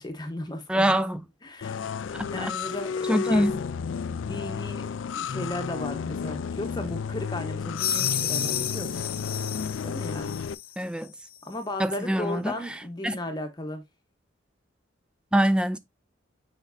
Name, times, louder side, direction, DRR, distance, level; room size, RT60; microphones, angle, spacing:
voice 1, 0.0-0.9 1.4-1.8 2.3-3.5 4.1-4.9 5.1-8.9 9.8-10.3 11.4-13.8, left 1 dB, 20° left, 1.0 m, -35 dB
voice 2, 0.7-1.2 2.4-2.5 3.1-3.6 10.8-11.1 11.8-12.5 13.0-13.2 15.3-15.8, equal, 5° right, 0.4 m, -24 dB
sound 1, 1.6-10.5, left 6 dB, 75° left, 0.4 m, -32 dB
sound 2, 7.8-10.7, left 10 dB, 50° left, 0.8 m, -31 dB
6.9 x 5.2 x 2.6 m
head